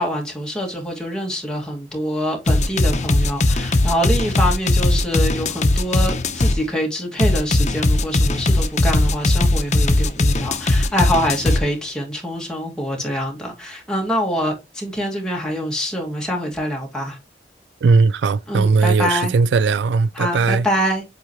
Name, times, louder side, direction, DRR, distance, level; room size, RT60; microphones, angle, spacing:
voice 1, 0.0-17.2 18.5-19.3 20.2-21.0, equal, 5° left, 2.1 m, -25 dB
sound 1, 2.5-6.6 7.2-11.6, left 2 dB, 40° left, 0.8 m, -18 dB
voice 2, 17.8-20.7, right 4 dB, 80° right, 0.4 m, -18 dB
8.3 x 3.7 x 3.1 m
head